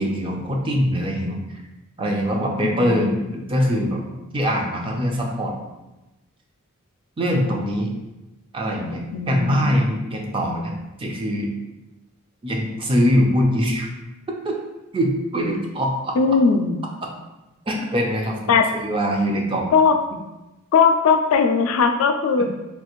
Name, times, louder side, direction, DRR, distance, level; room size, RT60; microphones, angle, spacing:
voice 1, 0.0-1.6 2.0-4.0 4.3-5.6 7.2-7.9 8.5-10.7 11.0-11.5 12.4-13.9 14.3-14.6 14.9-16.1 17.7-19.7 22.4-22.5, equal, 25° right, 1 dB, 0.4 m, -23 dB
voice 2, 2.6-3.5 9.1-9.9 16.2-16.8 18.5-18.7 19.7-20.0 20.7-22.4, left 5 dB, 90° left, 6 dB, 0.3 m, -19 dB
3.2 x 2.4 x 2.9 m, 1.0 s
head